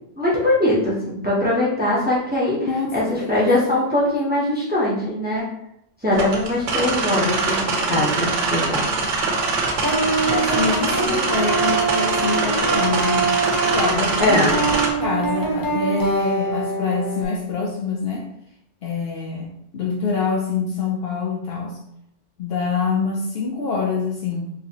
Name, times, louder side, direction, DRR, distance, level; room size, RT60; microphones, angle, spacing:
voice 1, 0.2-5.5 6.0-8.9 14.2-14.5, left 1 dB, 10° right, -6 dB, 0.7 m, -21 dB
voice 2, 2.7-3.8 10.2-13.3 13.6-14.6 15.0-18.3 18.8-21.8 22.4-24.5, left 4 dB, 65° left, 0 dB, 0.7 m, -26 dB
sound 1, 6.1-14.9, right 3 dB, 75° right, 1.0 m, -23 dB
sound 2, 9.8-17.2, right 3 dB, 25° left, 0.4 m, -24 dB
3.9 x 2.8 x 2.8 m, 0.76 s
omnidirectional pair, 1.3 m